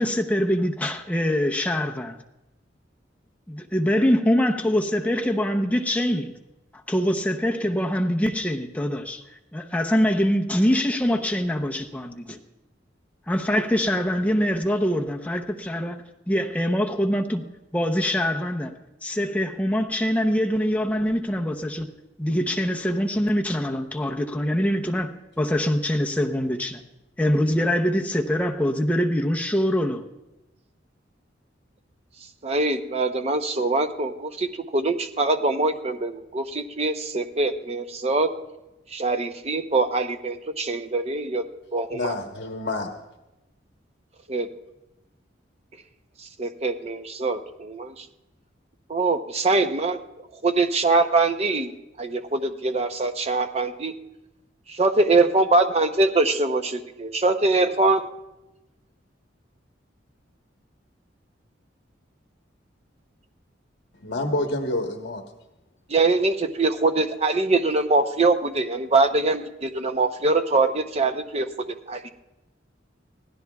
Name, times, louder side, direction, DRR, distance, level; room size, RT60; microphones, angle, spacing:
voice 1, 0.0-2.2 3.5-6.3 6.9-9.2 9.5-12.4 13.3-17.4 17.7-21.9 22.2-25.1 25.4-26.8 27.2-30.0, equal, 10° left, 0.7 m, -24 dB
voice 2, 32.4-38.3 38.9-41.4 41.7-42.2 44.3-44.5 46.4-48.1 48.9-50.0 50.4-53.9 54.7-58.1 65.9-71.5 71.9-72.0, right 3 dB, 35° right, 0.7 m, -23 dB
voice 3, 41.9-42.9 64.0-65.2, left 2 dB, 70° left, 1.1 m, -28 dB
24.5 x 17.0 x 2.4 m
head